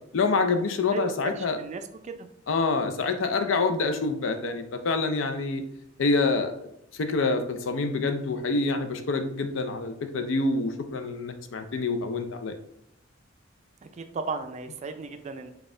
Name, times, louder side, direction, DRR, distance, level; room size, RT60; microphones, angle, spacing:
voice 1, 0.1-1.6 2.5-5.6 6.0-12.6, left 3 dB, 80° left, 7 dB, 0.5 m, -27 dB
voice 2, 0.9-2.3 13.8-15.5, right 4 dB, 35° right, 8 dB, 0.3 m, -35 dB
4.0 x 2.3 x 3.7 m, 0.75 s
head